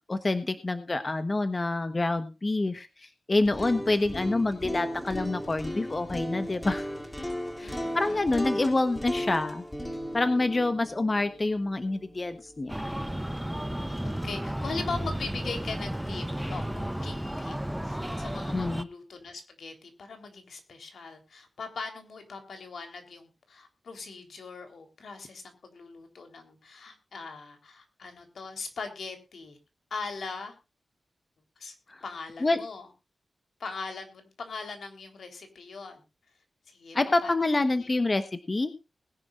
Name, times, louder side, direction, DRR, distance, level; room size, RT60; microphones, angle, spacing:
voice 1, 0.1-6.9 7.6-9.6 10.1-12.9 18.5-18.9 31.9-32.0 32.4-32.6 36.9-38.7, left 2 dB, 30° left, 9 dB, 1.2 m, -27 dB
sound 1, 3.4-13.4, equal, 10° left, 2.7 m, -36 dB
voice 2, 7.6-8.4 10.4-10.5 14.0-17.6 17.8-29.6 29.9-30.6 31.6-31.7 32.0-32.9 33.6-36.0 36.7-37.3 37.7-38.0, left 4 dB, 75° left, 5 dB, 3.7 m, -40 dB
Breathing, 12.7-18.8, right 1 dB, 5° right, 0.7 m, -33 dB
20.5 x 11.0 x 2.5 m, 0.28 s
wide cardioid pair, 95°, 0 cm